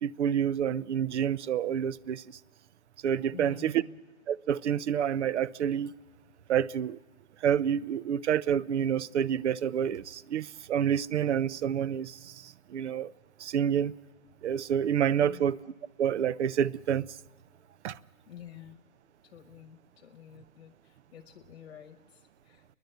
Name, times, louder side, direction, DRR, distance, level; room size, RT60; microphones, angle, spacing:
voice 1, 0.0-2.4 3.0-3.8 4.3-5.9 6.5-7.0 7.4-13.1 13.4-13.9 14.4-15.6 16.0-17.2 17.8-18.0, right 9 dB, 55° right, 0.6 m, -28 dB
voice 2, 3.3-4.0 15.2-15.5 18.3-18.8 19.2-22.6, left 10 dB, 50° left, 1.1 m, -50 dB
29.5 x 11.0 x 9.1 m
hypercardioid pair, 140°, 40 cm